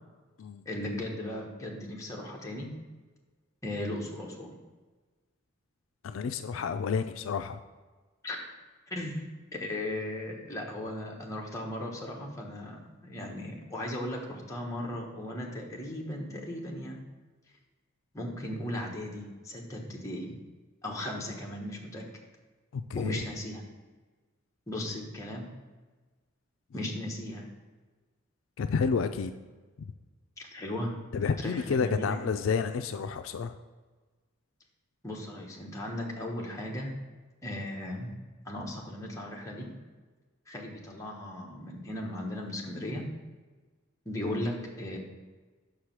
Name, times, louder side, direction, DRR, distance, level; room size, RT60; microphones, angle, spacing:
voice 1, 0.6-2.7 3.6-4.5 8.2-8.5 8.9-9.3 9.6-17.0 18.1-20.3 20.8-22.1 23.0-23.6 24.7-25.5 26.7-27.5 30.4-30.9 31.4-32.3 35.0-36.9 37.4-38.1 38.4-39.7 40.5-43.1 44.0-45.0, left 1 dB, 15° left, -2 dB, 1.2 m, -37 dB
voice 2, 6.0-7.6 22.7-23.2 28.6-29.3 31.1-33.5, left 5 dB, 75° left, 9 dB, 0.4 m, -30 dB
6.1 x 4.9 x 5.9 m, 1.3 s
head